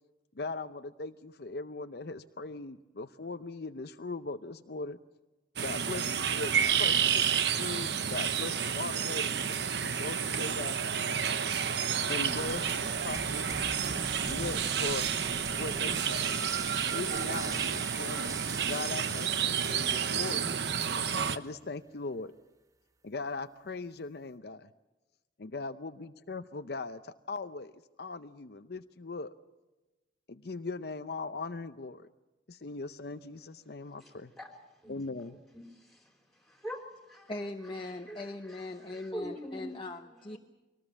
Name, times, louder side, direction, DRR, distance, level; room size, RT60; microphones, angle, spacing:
voice 1, 0.4-5.0 5.6-11.0 12.1-13.6 14.2-15.1 15.5-16.4 16.9-18.4 18.7-20.5 21.4-22.3 23.0-24.7 25.4-27.7 28.0-29.3 30.3-32.1 32.5-34.3 34.9-35.4, left 3 dB, 55° left, 9 dB, 0.7 m, -39 dB
sound 1, 5.6-21.4, right 7 dB, 65° right, 1.0 m, -30 dB
sound 2, 12.3-20.7, right 2 dB, 20° right, 0.8 m, -44 dB
voice 2, 34.0-34.5 34.8-35.0 35.5-36.1 36.4-36.8 37.1-37.3 37.8-39.7 40.3-40.4, equal, ahead, 3 dB, 3.9 m, -44 dB
voice 3, 37.3-40.4, left 2 dB, 25° left, 4 dB, 0.9 m, -40 dB
24.0 x 19.0 x 7.2 m, 1.1 s
head